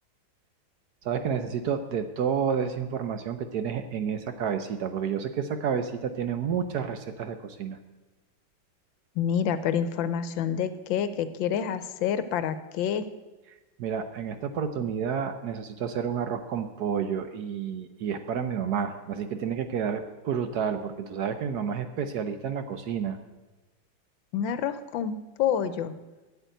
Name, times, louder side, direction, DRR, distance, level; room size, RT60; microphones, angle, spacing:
voice 1, 1.0-7.8 13.8-23.2, right 7 dB, 65° right, 9 dB, 1.1 m, -30 dB
voice 2, 9.2-13.0 24.3-25.9, left 8 dB, 75° left, 12 dB, 1.4 m, -28 dB
8.2 x 8.2 x 9.1 m, 1.2 s
omnidirectional pair, 2.1 m